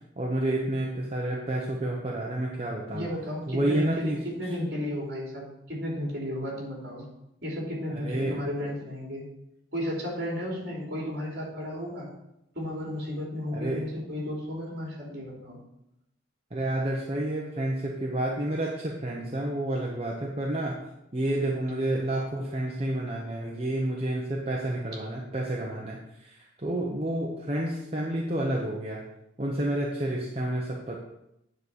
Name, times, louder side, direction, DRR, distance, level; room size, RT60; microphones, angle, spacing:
voice 1, 0.2-3.1 3.5-4.2 7.9-8.4 13.5-13.9 16.5-20.8 21.1-29.1 29.4-31.0, right 1 dB, 30° right, -2 dB, 0.9 m, -30 dB
voice 2, 2.9-7.0 7.4-9.2 9.7-12.1 12.5-15.6, left 1 dB, 55° right, -3 dB, 3.2 m, -33 dB
9.5 x 4.1 x 6.5 m, 0.85 s
head